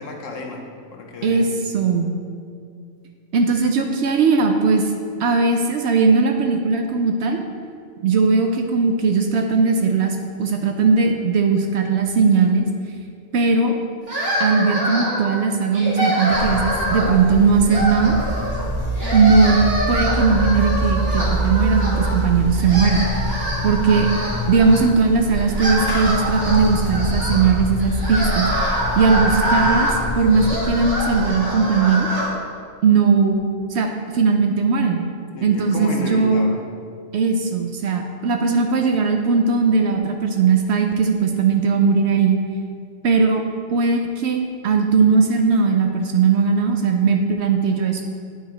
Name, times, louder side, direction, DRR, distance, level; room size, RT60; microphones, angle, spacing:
voice 1, 0.0-1.5 35.3-36.6, left 3 dB, 70° left, 2 dB, 1.2 m, -32 dB
voice 2, 1.2-2.1 3.3-4.9 5.2-7.4 8.0-12.7 13.3-13.8 14.4-18.2 19.1-23.1 23.6-24.1 24.5-32.1 32.8-33.4 33.7-35.1 35.4-36.5 37.1-42.4 43.0-43.4 43.7-48.0, right 4 dB, 65° right, 4 dB, 0.8 m, -18 dB
sound 1, 14.1-15.3 15.7-17.2 17.7-18.6 18.9-22.2 22.5-24.8 25.3-32.3, right 1 dB, 50° right, 1.9 m, -25 dB
Buzz, 16.3-31.3, equal, 25° left, 0.6 m, -26 dB
9.2 x 4.8 x 3.8 m, 2.2 s
omnidirectional pair, 1.4 m